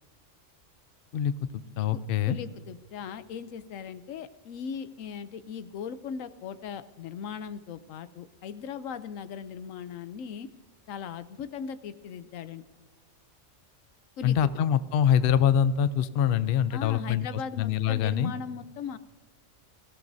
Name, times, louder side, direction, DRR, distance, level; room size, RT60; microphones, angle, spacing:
voice 1, 1.8-2.4 14.2-17.3 17.6-18.3, left 9 dB, 60° left, 14 dB, 0.6 m, -24 dB
voice 2, 2.3-10.5 10.9-12.6 14.2-14.5 16.7-19.0, left 7 dB, 80° left, 13 dB, 1.0 m, -38 dB
25.0 x 16.0 x 2.7 m, 1.3 s
omnidirectional pair, 1.3 m